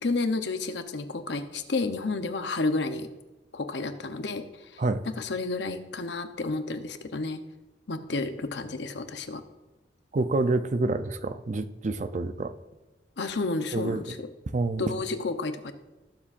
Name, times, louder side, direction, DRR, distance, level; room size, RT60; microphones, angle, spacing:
voice 1, 0.0-3.1 3.5-7.4 7.9-9.4 13.2-14.3 14.8-15.7, left 3 dB, 70° left, 8 dB, 0.8 m, -31 dB
voice 2, 10.1-12.5 13.7-14.0 14.5-14.9, right 2 dB, 40° right, 11 dB, 0.5 m, -27 dB
19.0 x 7.3 x 2.5 m, 1.1 s
head